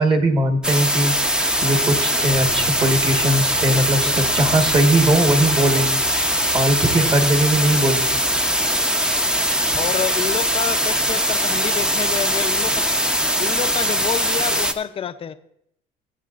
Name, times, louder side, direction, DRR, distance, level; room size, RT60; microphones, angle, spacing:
voice 1, 0.0-8.4, right 1 dB, 30° right, 5 dB, 1.4 m, -20 dB
sound 1, 0.6-14.7, equal, 5° right, 0.6 m, -21 dB
Bass guitar, 2.3-8.5, equal, 85° right, 3.2 m, -40 dB
voice 2, 3.7-4.2 9.8-12.9 13.4-15.3, left 8 dB, 35° left, 10 dB, 0.6 m, -28 dB
20.5 x 7.5 x 2.5 m, 0.76 s
cardioid pair, 110°, 17 cm